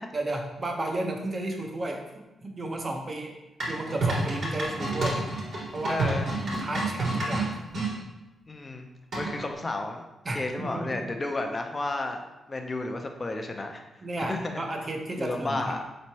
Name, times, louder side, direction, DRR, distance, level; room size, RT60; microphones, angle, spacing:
voice 1, 0.1-3.4 3.7-5.3 5.7-6.1 6.4-7.6 10.2-11.0 14.0-15.7, right 2 dB, 40° right, 2 dB, 0.7 m, -33 dB
sound 1, 3.6-7.9 9.1-9.5, right 2 dB, 65° right, 1.5 m, -29 dB
voice 2, 5.9-6.3 8.5-8.8 9.1-10.0 10.3-12.2 12.5-13.9 14.2-14.6 15.2-15.8, left 2 dB, 35° left, 4 dB, 0.6 m, -32 dB
4.3 x 3.1 x 2.8 m, 0.99 s
cardioid pair, 60°, 0 cm